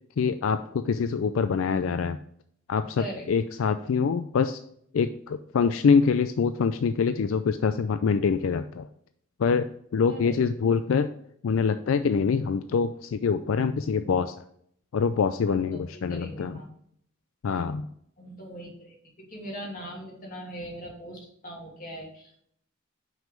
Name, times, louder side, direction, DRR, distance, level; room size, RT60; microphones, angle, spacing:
voice 1, 0.2-2.2 2.7-4.6 4.9-8.9 9.4-11.1 11.4-14.3 14.9-16.6 17.4-17.9, left 5 dB, 85° left, 10 dB, 0.4 m, -25 dB
voice 2, 10.1-10.4 15.5-16.7 18.2-19.0 19.3-22.4, equal, 45° left, -1 dB, 2.4 m, -40 dB
5.9 x 5.7 x 5.1 m, 0.68 s
head